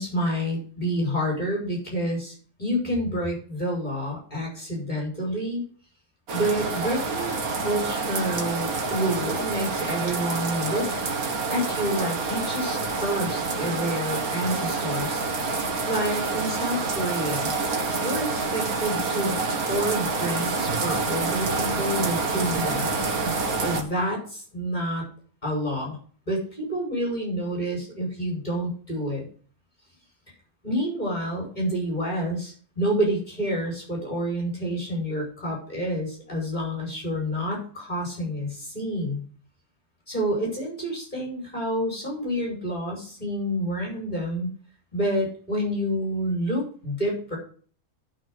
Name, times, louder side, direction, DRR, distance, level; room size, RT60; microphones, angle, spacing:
voice 1, 0.0-5.6 6.3-10.9 11.5-17.5 18.0-23.1 23.6-25.1 25.4-26.0 26.3-29.3 30.6-39.2 40.1-44.5 44.9-47.4, equal, 30° left, -2 dB, 5.4 m, -28 dB
sound 1, 6.3-23.8, right 3 dB, 90° right, 2.0 m, -27 dB
11.0 x 6.2 x 6.2 m, 0.43 s
omnidirectional pair, 1.5 m